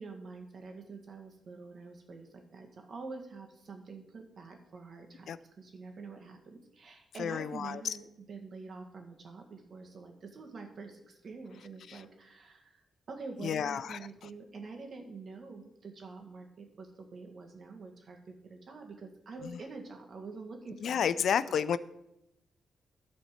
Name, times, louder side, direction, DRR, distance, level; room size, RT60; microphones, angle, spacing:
voice 1, 0.0-12.8 13.1-21.5, right 4 dB, 55° right, 3 dB, 1.9 m, -46 dB
voice 2, 7.2-7.9 11.9-12.0 13.4-14.0 20.8-21.8, left 8 dB, 70° left, 16 dB, 0.4 m, -30 dB
12.0 x 4.3 x 7.2 m, 0.84 s
cardioid pair, 70°, 0 cm